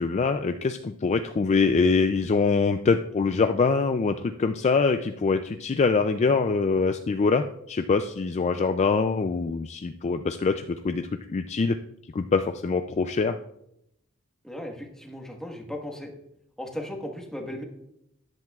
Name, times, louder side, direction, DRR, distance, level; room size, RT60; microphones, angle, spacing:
voice 1, 0.0-11.8 12.1-13.4, left 4 dB, 30° left, 8 dB, 0.3 m, -24 dB
voice 2, 14.4-16.1 16.6-17.6, left 1 dB, 5° left, 1 dB, 1.3 m, -36 dB
13.0 x 10.5 x 2.4 m, 0.79 s
head